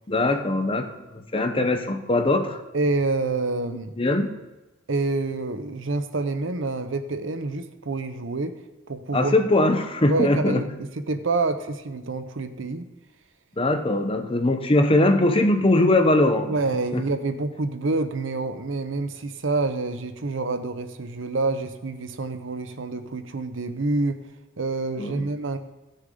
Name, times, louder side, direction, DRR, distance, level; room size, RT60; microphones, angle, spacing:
voice 1, 0.1-2.6 4.0-4.3 9.1-10.6 13.6-16.5 16.9-17.0 25.0-25.3, left 2 dB, 25° left, 6 dB, 0.8 m, -21 dB
voice 2, 2.7-3.9 4.9-8.5 8.9-9.3 10.1-12.9 16.5-24.2 24.6-25.6, right 3 dB, 70° right, 10 dB, 0.7 m, -27 dB
16.0 x 6.6 x 3.8 m, 1.1 s
head